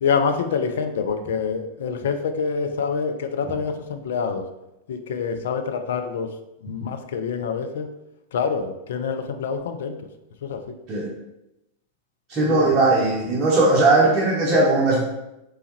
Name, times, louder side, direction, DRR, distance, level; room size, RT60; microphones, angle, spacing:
voice 1, 0.0-4.5 4.9-6.3 6.6-7.9 8.3-10.0 10.4-10.6 12.5-12.7, left 6 dB, 60° left, 7 dB, 0.4 m, -26 dB
voice 2, 12.3-15.0, right 2 dB, 30° right, -4 dB, 0.7 m, -18 dB
3.3 x 3.1 x 3.0 m, 0.90 s
figure-of-eight pair, 90°, 0 cm